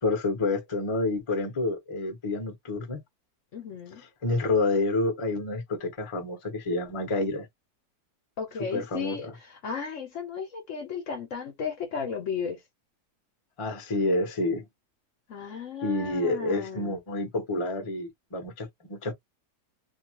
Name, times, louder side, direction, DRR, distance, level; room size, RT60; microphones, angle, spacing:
voice 1, 0.0-3.0 4.2-7.5 8.7-9.3 13.6-14.6 15.8-19.1, left 2 dB, 30° left, 0.6 m, -28 dB
voice 2, 3.5-4.0 8.4-12.6 15.3-17.0, left 6 dB, 60° left, 0.9 m, -35 dB
2.7 x 2.3 x 2.8 m
omnidirectional pair, 1.7 m